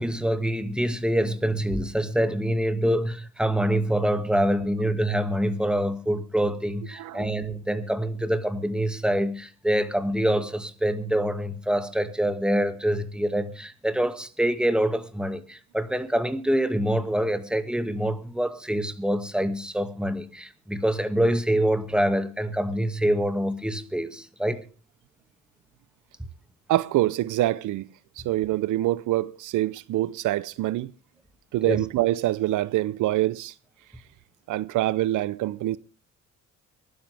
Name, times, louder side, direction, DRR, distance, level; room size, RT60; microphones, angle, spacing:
voice 1, 0.0-24.6 31.7-31.8, equal, 5° right, 2.0 m, -25 dB
voice 2, 7.0-7.3 26.7-27.9 28.2-30.9 31.5-33.5 34.5-35.8, right 15 dB, 80° right, 0.7 m, -25 dB
23.5 x 13.0 x 3.5 m
cardioid pair, 90°, 30 cm